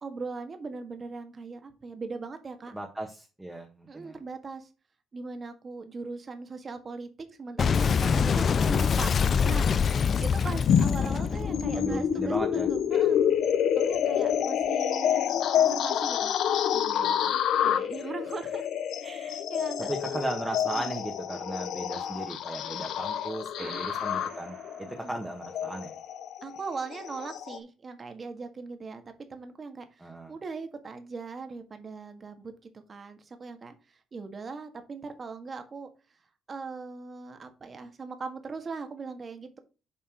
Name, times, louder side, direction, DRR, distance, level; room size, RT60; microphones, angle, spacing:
voice 1, 0.0-2.7 3.9-4.7 5.1-7.1 7.4-9.1 9.4-13.2 13.7-16.3 16.7-18.7 19.0-20.3 20.7-20.9 21.9-22.0 23.6-23.9 25.0-25.2 26.4-35.9 36.5-39.6, right 4 dB, 40° right, 7 dB, 1.7 m, -40 dB
voice 2, 2.7-4.2 11.7-12.7 14.0-14.4 19.8-25.9 30.0-30.3, right 1 dB, 10° right, 1 dB, 1.5 m, -36 dB
Boom, 7.6-12.8, left 6 dB, 50° left, 0.4 m, -25 dB
sound 1, 10.7-27.6, left 9 dB, 80° left, 0.7 m, -28 dB
sound 2, 23.6-26.0, right 5 dB, 60° right, 2.5 m, -49 dB
7.5 x 4.2 x 5.0 m, 0.32 s
cardioid pair, 90°, 0 cm